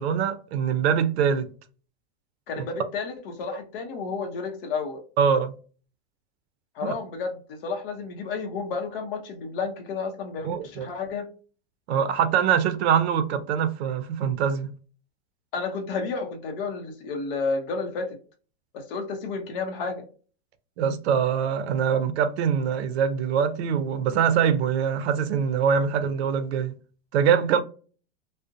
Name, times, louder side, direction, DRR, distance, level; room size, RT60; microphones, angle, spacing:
voice 1, 0.0-1.5 2.6-2.7 5.2-5.5 6.8-6.9 10.4-10.9 11.9-14.7 20.8-26.7 27.1-27.6, right 7 dB, 70° right, 0.5 m, -23 dB
voice 2, 2.5-5.0 6.7-11.3 15.5-18.2 18.7-20.0, left 4 dB, 55° left, 0.7 m, -31 dB
2.6 x 2.1 x 2.5 m
supercardioid pair, 175°, 34 cm